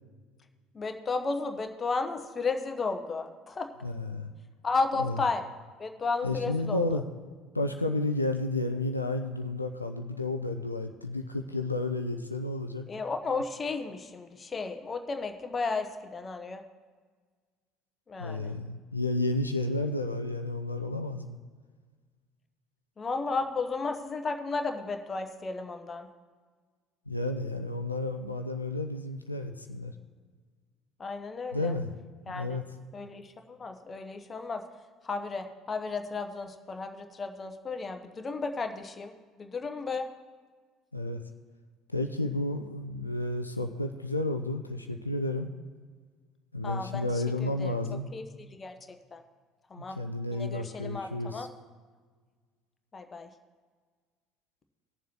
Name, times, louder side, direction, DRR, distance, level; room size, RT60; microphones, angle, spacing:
voice 1, 0.7-3.7 4.6-5.4 5.8-7.0 12.9-16.6 18.1-18.5 23.0-26.1 31.0-31.7 32.3-32.6 32.9-34.6 35.0-40.1 46.6-47.7 48.1-48.7 49.1-49.2 49.7-50.0 50.3-51.5 52.9-53.3, left 4 dB, 30° left, 6 dB, 1.0 m, -33 dB
voice 2, 3.8-4.3 5.0-5.2 6.2-7.0 7.5-12.9 18.2-21.4 27.1-29.9 31.5-31.9 32.3-32.6 40.9-41.2 41.9-45.5 46.5-48.1 49.8-51.5, left 2 dB, 90° left, 5 dB, 0.4 m, -31 dB
19.5 x 7.1 x 3.1 m, 1.5 s
figure-of-eight pair, 60°, 0 cm